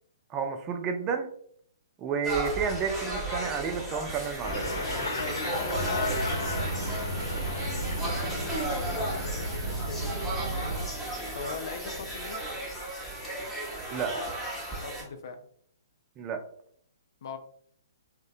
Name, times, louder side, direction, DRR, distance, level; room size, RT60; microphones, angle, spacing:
voice 1, 0.3-1.3 2.0-4.7 6.1-6.2 13.9-14.2 16.2-16.4, right 6 dB, 25° right, 5 dB, 0.4 m, -31 dB
sound 1, 2.2-15.0, right 1 dB, 5° left, 0.8 m, -35 dB
sound 2, 4.4-9.6, left 3 dB, 85° left, 0.9 m, -35 dB
voice 2, 5.2-8.0 8.7-10.8 11.3-12.6 14.8-15.4 17.2-17.4, left 5 dB, 60° left, 8 dB, 0.4 m, -41 dB
sound 3, 5.7-10.9, right 2 dB, 70° right, 0.6 m, -34 dB
2.6 x 2.1 x 2.3 m, 0.62 s
hypercardioid pair, 125°, 2 cm